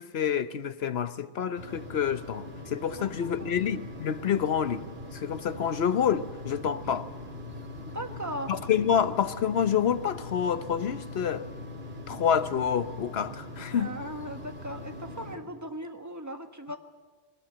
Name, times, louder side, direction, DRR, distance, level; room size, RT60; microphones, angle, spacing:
voice 1, 0.0-4.9 5.1-7.1 8.5-11.5 12.1-13.9, left 8 dB, 75° left, 1.1 m, -28 dB
sound 1, 1.6-15.3, left 2 dB, 70° right, 3.2 m, -42 dB
voice 2, 3.0-3.6 7.9-8.5 13.7-16.8, equal, 15° right, 1.4 m, -38 dB
21.0 x 18.5 x 8.9 m
omnidirectional pair, 1.1 m